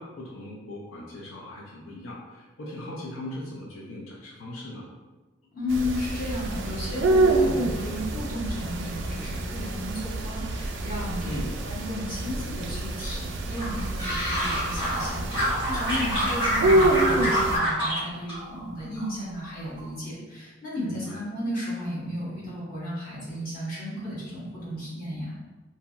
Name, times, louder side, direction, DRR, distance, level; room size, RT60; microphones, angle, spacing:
voice 1, 0.0-4.9 11.2-11.6 15.1-15.7 20.8-21.2, left 1 dB, 85° left, -4 dB, 0.5 m, -39 dB
voice 2, 5.5-25.3, left 1 dB, 45° left, -8 dB, 1.1 m, -34 dB
sound 1, 5.7-17.6, right 2 dB, 60° right, 0.3 m, -27 dB
sound 2, 13.6-15.0 15.3-18.0 18.3-19.1 19.4-19.8, equal, 25° left, 1.4 m, -27 dB
2.9 x 2.7 x 2.4 m, 1.2 s
head